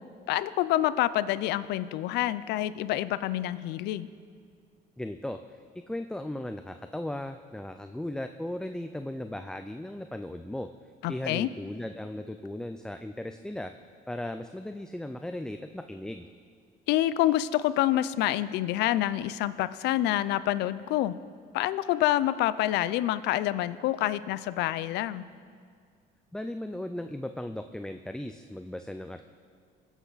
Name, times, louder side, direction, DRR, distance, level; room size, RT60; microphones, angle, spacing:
voice 1, 0.3-4.1 11.0-11.5 16.9-21.1 21.5-25.2, left 14 dB, 85° left, 15 dB, 0.5 m, -27 dB
voice 2, 5.0-5.4 5.9-10.7 11.1-13.7 14.1-16.3 26.3-29.3, left 1 dB, 5° left, 7 dB, 0.4 m, -37 dB
21.5 x 8.2 x 4.0 m, 2.1 s
cardioid pair, 110°, 17 cm